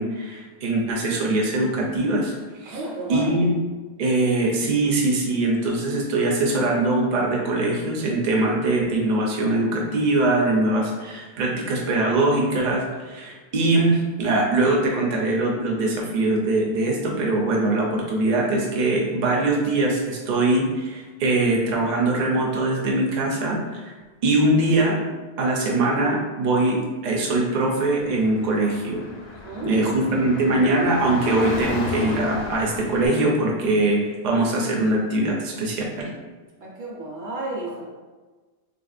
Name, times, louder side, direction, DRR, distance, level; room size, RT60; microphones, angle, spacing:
voice 1, 0.0-2.4 2.6-2.8 3.1-3.6 4.0-23.9 24.2-25.0 25.4-29.1 29.6-36.1, right 2 dB, 50° right, -1 dB, 0.6 m, -22 dB
voice 2, 2.7-3.4 29.4-30.0 36.6-37.8, right 2 dB, 70° right, -4 dB, 1.0 m, -32 dB
Car / Traffic noise roadway noise, 28.0-33.1, left 3 dB, 75° left, 0.8 m, -35 dB
3.5 x 2.6 x 2.4 m, 1.3 s
omnidirectional pair, 1.1 m